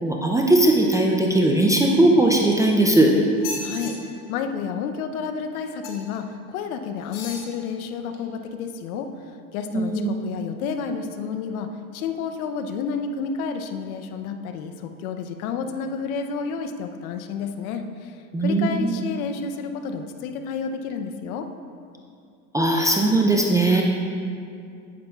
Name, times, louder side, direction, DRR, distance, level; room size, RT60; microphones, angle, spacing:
voice 1, 0.0-3.1 9.7-10.2 18.3-19.0 22.5-23.8, right 2 dB, 10° right, 0 dB, 0.5 m, -19 dB
sound 1, 2.2-2.9 3.3-3.9 5.8-6.2 7.0-7.5 8.1-8.2, left 3 dB, 45° left, 1.6 m, -36 dB
voice 2, 3.6-4.0 4.3-21.5, left 6 dB, 65° left, 7 dB, 0.8 m, -30 dB
9.4 x 8.5 x 2.4 m, 2.4 s
hypercardioid pair, 95°, 45 cm